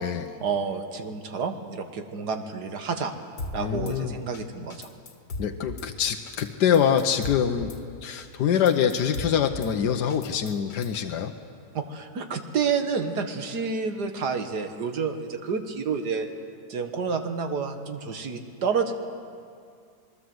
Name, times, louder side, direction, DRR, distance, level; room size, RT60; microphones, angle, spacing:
voice 1, 0.4-3.1 3.5-4.9 11.7-16.3 16.7-18.9, right 5 dB, 80° right, 6 dB, 2.1 m, -29 dB
Drum kit / Snare drum, 3.4-4.0 4.3-4.4 4.7-5.9 6.3-6.5 6.7-7.8 8.2-8.3 8.5-9.7 10.1-11.0, left 2 dB, 65° left, 2.2 m, -38 dB
voice 2, 3.6-4.1 5.4-7.7 8.0-11.3, left 8 dB, 85° left, 6 dB, 1.6 m, -24 dB
27.0 x 20.5 x 7.8 m, 2.3 s
omnidirectional pair, 1.7 m